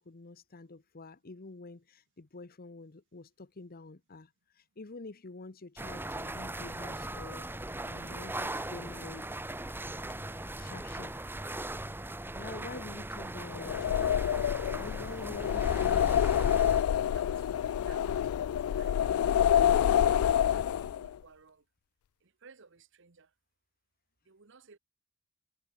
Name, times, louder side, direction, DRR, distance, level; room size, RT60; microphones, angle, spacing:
voice 1, 0.0-4.3 4.8-9.3 10.3-11.1 12.3-14.1 14.8-16.3, left 3 dB, 45° left, 0.9 m, -47 dB
sound 1, 5.8-16.8, right 1 dB, 10° right, 1.3 m, -39 dB
sound 2, 13.5-21.1, left 9 dB, 80° left, 0.3 m, -27 dB
voice 2, 17.1-21.6 22.4-23.3 24.3-24.8, right 5 dB, 60° right, 1.2 m, -56 dB
head